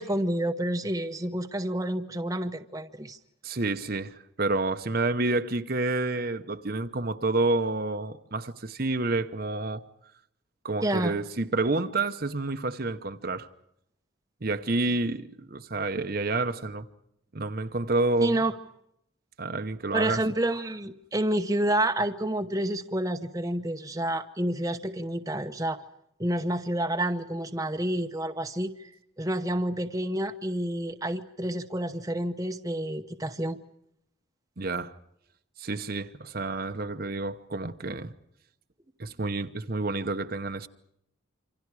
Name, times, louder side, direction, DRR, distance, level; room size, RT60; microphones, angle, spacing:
voice 1, 0.0-3.2 10.8-11.1 18.2-18.5 19.9-25.8 26.2-28.9 29.2-33.6, right 1 dB, 15° right, 0.9 m, -29 dB
voice 2, 3.4-9.8 10.6-13.5 14.4-16.9 17.3-18.4 19.4-20.2 34.6-34.9 35.6-38.1 39.0-40.7, right 2 dB, 45° right, 1.0 m, -29 dB
27.5 x 26.0 x 4.9 m
head